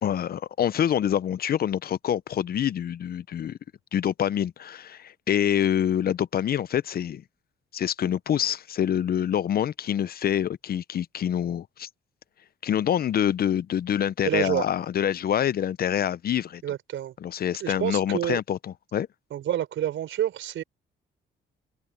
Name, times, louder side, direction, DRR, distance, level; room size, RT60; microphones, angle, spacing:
voice 1, 0.0-3.6 3.9-7.2 7.7-11.9 12.6-16.6 17.2-18.6 18.9-19.1, left 10 dB, 50° left, 0.6 m, -26 dB
voice 2, 14.2-14.6 16.6-17.1 17.6-18.4 19.3-20.6, right 11 dB, 75° right, 5.2 m, -28 dB
cardioid pair, 90°, 20 cm